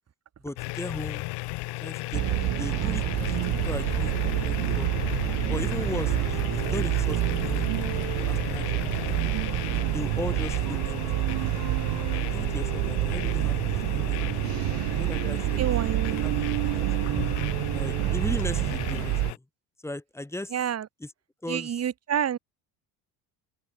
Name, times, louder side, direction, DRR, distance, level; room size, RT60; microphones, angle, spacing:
voice 1, 0.4-1.2 1.8-4.9 5.5-7.9 8.2-9.3 9.9-11.2 12.1-14.5 14.9-17.1 17.7-19.4 19.8-20.7 21.0-21.1 21.4-21.9, left 1 dB, 5° left, 7.8 m, -38 dB
sound 1, 0.6-19.4, left 25 dB, 85° left, 5.8 m, -35 dB
sound 2, 2.1-19.3, right 20 dB, 60° right, 0.7 m, -27 dB
voice 2, 15.4-16.3 20.5-20.9 21.5-22.4, right 9 dB, 40° right, 5.2 m, -29 dB
open air
cardioid pair, 130°, 40 cm